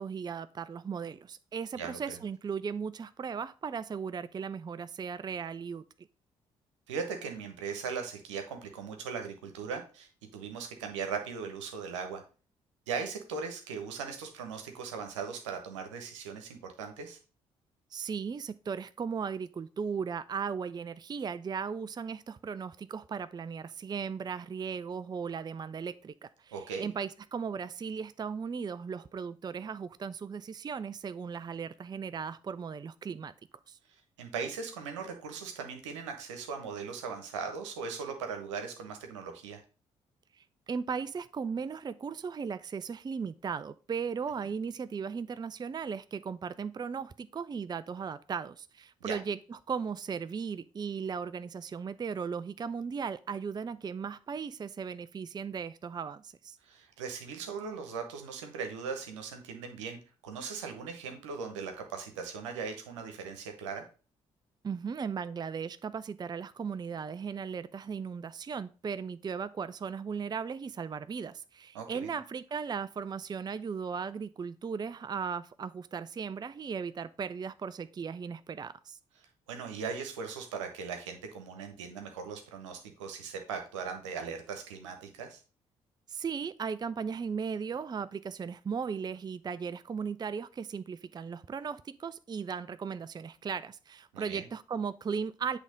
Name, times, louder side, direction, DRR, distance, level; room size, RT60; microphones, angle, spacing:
voice 1, 0.0-5.8 17.9-33.3 33.7-33.8 40.4-56.6 64.6-79.0 86.1-95.6, right 6 dB, 25° right, 0.4 m, -37 dB
voice 2, 1.7-2.2 6.9-12.2 12.9-17.2 26.5-26.9 34.2-39.6 49.0-49.2 56.6-63.8 71.7-72.2 79.5-85.4 94.1-94.5, right 5 dB, 85° right, 1.1 m, -39 dB
8.3 x 3.5 x 5.1 m
hypercardioid pair, 45°, 15 cm